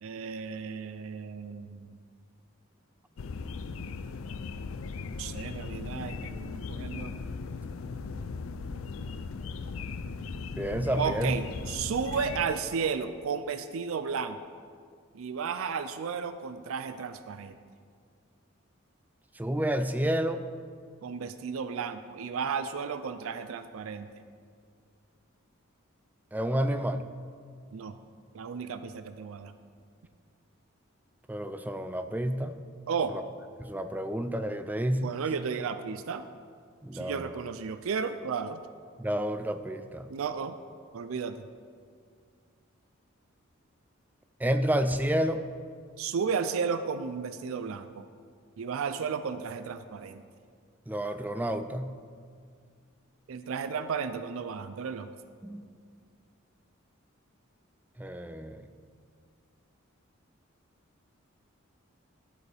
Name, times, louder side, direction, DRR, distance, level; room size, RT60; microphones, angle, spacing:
voice 1, 0.0-2.0 5.2-7.1 11.0-14.4 15.1-17.6 21.0-24.1 27.7-28.0 28.3-29.5 32.9-33.1 35.0-36.2 36.9-38.6 40.1-40.5 40.9-41.4 46.0-48.0 48.6-50.2 53.3-55.1, right 6 dB, 80° right, 10 dB, 0.4 m, -33 dB
sound 1, 3.2-12.5, left 4 dB, 80° left, 0.4 m, -38 dB
voice 2, 10.6-11.4 19.4-20.5 26.3-27.0 31.3-32.5 33.1-33.2 33.6-35.1 36.8-37.3 39.0-40.1 44.4-45.4 50.9-51.9 55.4-55.6 58.0-58.7, equal, 10° right, 9 dB, 0.3 m, -30 dB
13.0 x 8.3 x 3.4 m, 2.1 s
head